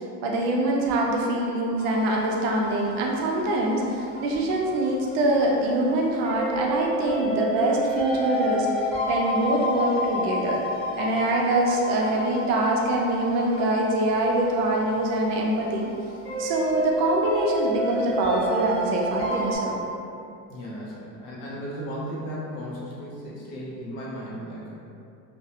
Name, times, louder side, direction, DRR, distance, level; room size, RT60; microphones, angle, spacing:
voice 1, 0.2-8.7 9.1-10.6 11.0-15.9 16.4-19.8, right 1 dB, 65° right, -1 dB, 0.5 m, -24 dB
sound 1, 1.8-19.6, equal, 5° left, 0.5 m, -31 dB
voice 2, 20.5-24.7, equal, 65° left, -6 dB, 0.8 m, -35 dB
2.4 x 2.1 x 2.7 m, 2.6 s
cardioid pair, 170°, 36 cm